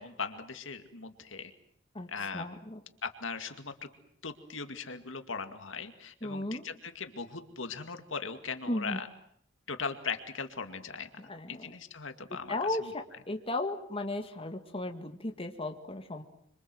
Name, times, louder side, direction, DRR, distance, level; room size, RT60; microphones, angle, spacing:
voice 1, 0.0-1.5 2.1-2.6 3.0-3.7 4.2-9.1 9.7-11.1 11.5-12.9, left 5 dB, 75° left, 7 dB, 2.3 m, -39 dB
voice 2, 2.3-2.8 6.2-6.6 8.7-9.0 11.3-11.7 12.5-16.2, left 2 dB, 30° left, 5 dB, 2.1 m, -35 dB
26.5 x 26.0 x 7.9 m, 0.68 s
head